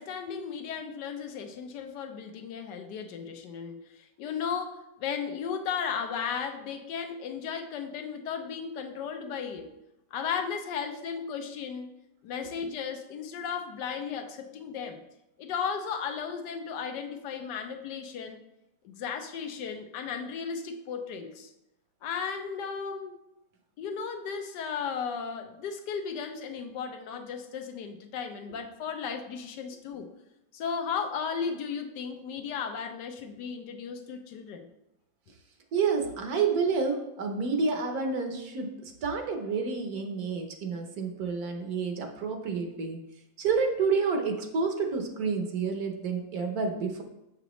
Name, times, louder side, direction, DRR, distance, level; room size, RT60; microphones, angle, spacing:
voice 1, 0.0-9.7 10.1-11.9 12.2-15.0 15.4-18.4 18.8-21.5 22.0-23.2 23.8-30.1 30.5-34.7, left 6 dB, 80° left, 6 dB, 1.3 m, -35 dB
voice 2, 35.7-43.0 43.4-47.0, right 5 dB, 65° right, 4 dB, 1.3 m, -29 dB
6.8 x 6.0 x 3.0 m, 0.89 s
omnidirectional pair, 1.8 m